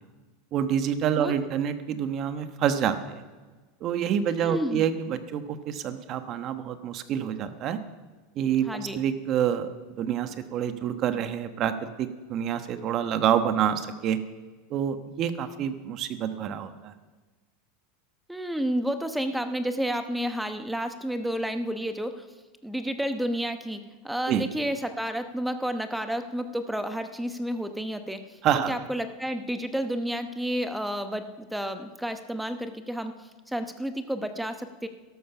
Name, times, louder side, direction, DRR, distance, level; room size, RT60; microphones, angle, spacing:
voice 1, 0.5-3.2 3.8-7.8 8.3-8.7 8.9-14.2 14.7-16.9 24.3-24.4 28.4-28.7, right 9 dB, 40° right, 10 dB, 1.1 m, -27 dB
voice 2, 4.4-4.8 8.7-9.0 18.3-22.3 22.6-28.4 28.7-33.1 33.5-34.9, equal, 5° right, 8 dB, 1.0 m, -31 dB
13.0 x 12.5 x 5.9 m, 1.3 s
supercardioid pair, 130°, 0 cm